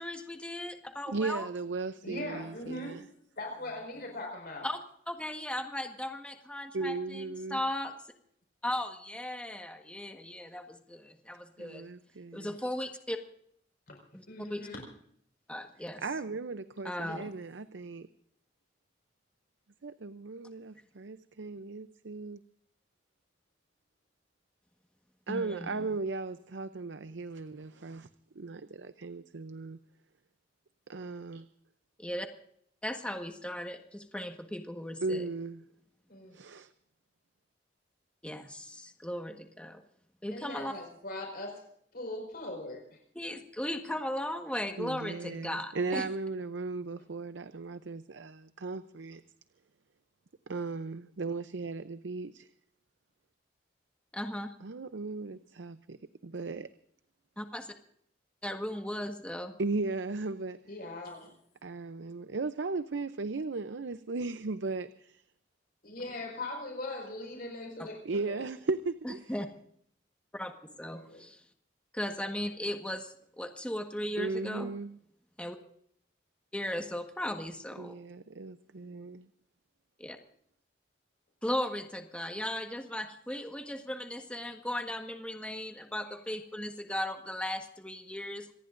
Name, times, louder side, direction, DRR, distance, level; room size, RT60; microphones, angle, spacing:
voice 1, 0.0-1.5 4.6-7.2 7.5-7.9 8.6-11.9 12.3-13.2 14.1-14.7 15.5-16.0 16.8-17.3 25.3-25.9 32.0-32.3 32.8-35.2 38.2-39.8 40.2-40.7 43.1-46.1 54.1-54.5 57.4-57.7 58.4-59.5 69.0-69.5 70.3-70.5 70.8-71.4 71.9-74.7 75.4-75.6 76.5-78.0 80.0-80.2 81.4-88.5, left 1 dB, 5° left, 4 dB, 1.5 m, -37 dB
voice 2, 1.1-3.1 6.7-7.6 11.6-12.5 16.0-18.1 19.8-22.4 25.3-28.1 28.3-29.8 30.9-31.5 35.0-35.6 36.3-36.7 44.8-49.2 50.5-52.5 54.6-56.7 59.6-60.6 61.6-65.2 68.0-69.2 74.2-75.0 77.8-79.3, right 3 dB, 85° right, 12 dB, 0.6 m, -36 dB
voice 3, 2.0-3.0 3.4-4.7 13.9-14.0 14.3-14.8 17.0-17.2 36.1-36.4 40.3-41.6 41.9-43.0 60.7-61.3 65.8-68.0 68.3-68.4 71.1-71.2, left 2 dB, 55° left, 2 dB, 5.1 m, -40 dB
26.5 x 19.0 x 2.6 m, 0.65 s
head